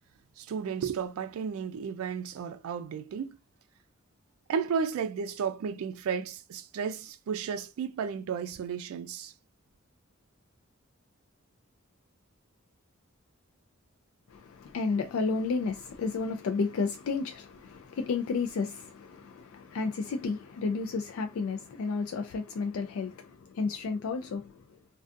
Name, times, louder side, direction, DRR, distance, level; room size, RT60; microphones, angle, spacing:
voice 1, 0.4-3.3 4.5-9.3, right 6 dB, 85° right, 0.3 m, -33 dB
voice 2, 14.3-24.5, left 4 dB, 80° left, 0.4 m, -32 dB
2.4 x 2.2 x 2.5 m
head